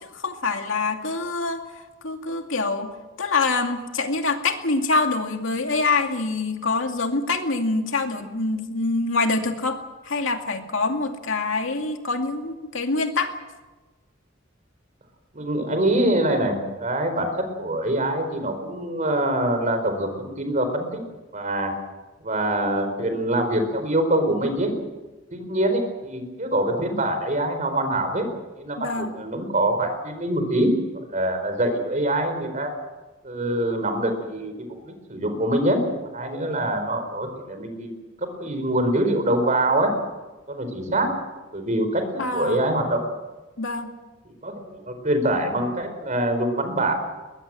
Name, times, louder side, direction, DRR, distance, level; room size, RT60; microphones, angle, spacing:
voice 1, 0.0-2.9 3.2-13.3 28.8-29.2 42.2-42.6 43.6-43.9, left 3 dB, 85° left, 4 dB, 2.4 m, -25 dB
voice 2, 15.3-17.3 17.6-21.0 21.3-21.7 22.2-24.7 25.3-28.2 28.6-30.8 31.1-32.7 33.2-35.8 36.1-37.9 38.4-39.9 40.5-41.1 41.5-43.0 44.4-47.0, right 1 dB, 40° right, 7 dB, 4.5 m, -24 dB
21.5 x 21.0 x 7.7 m, 1.2 s
head